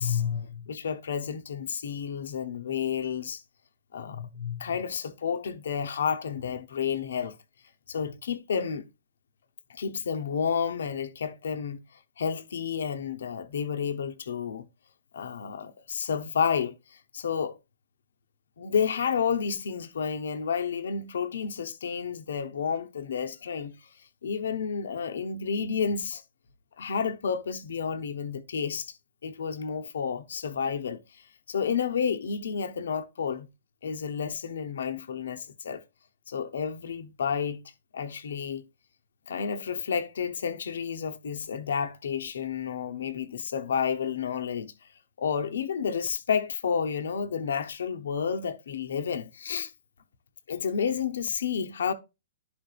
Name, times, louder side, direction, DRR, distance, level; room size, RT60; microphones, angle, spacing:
voice 1, 0.0-3.4 3.9-7.4 7.9-8.9 9.7-11.8 12.2-14.7 15.1-17.5 18.6-23.9 24.2-26.2 26.8-28.9 29.2-33.5 33.8-35.8 36.3-37.6 37.9-38.6 39.3-44.7 45.2-49.7 50.5-51.9, left 6 dB, 65° left, 0.8 m, -30 dB
11.5 x 5.1 x 2.4 m
figure-of-eight pair, 115°, 0 cm